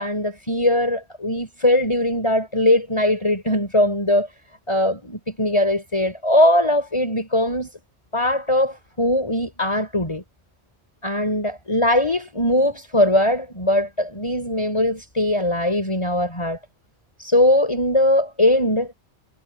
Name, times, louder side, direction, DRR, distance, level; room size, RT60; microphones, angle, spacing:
voice 1, 0.0-4.3 4.7-7.7 8.1-10.2 11.0-16.6 17.2-18.9, left 1 dB, 25° left, 5.6 m, -20 dB
omnidirectional pair, 1.2 m